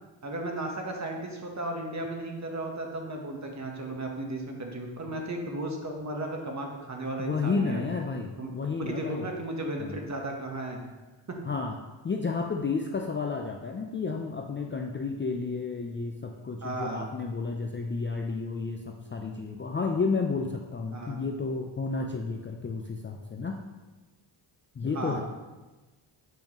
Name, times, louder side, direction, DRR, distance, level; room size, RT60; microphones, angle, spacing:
voice 1, 0.2-7.8 8.4-8.5 8.9-10.8 11.3-11.4 16.6-17.1 20.9-21.2 24.9-25.2, right 1 dB, 35° right, 2 dB, 1.1 m, -35 dB
voice 2, 7.2-9.3 9.8-10.0 11.4-11.8 12.0-23.6 24.7-25.2, left 4 dB, 25° left, 2 dB, 0.4 m, -31 dB
7.5 x 5.2 x 3.0 m, 1.2 s
cardioid pair, 90°, 50 cm